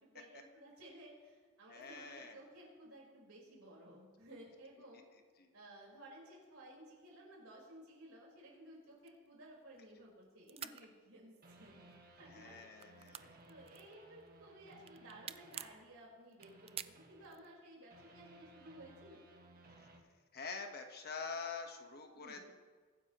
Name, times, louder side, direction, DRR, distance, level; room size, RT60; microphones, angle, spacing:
voice 1, 0.0-5.0 5.5-19.2 22.1-22.5, right 1 dB, 80° right, -3 dB, 4.6 m, -57 dB
voice 2, 1.7-2.4 5.4-5.5 12.3-13.4 19.8-19.9 20.3-22.5, left 5 dB, 50° left, 4 dB, 1.3 m, -46 dB
sound 1, 9.0-10.2 10.4-10.8 11.5-12.0 12.3-14.3 14.7-15.8 16.3-17.5, right 10 dB, 30° right, 0.3 m, -48 dB
sound 2, 11.4-16.1 16.4-20.0, right 2 dB, 45° right, 1.5 m, -61 dB
23.0 x 9.8 x 3.0 m, 1.5 s
head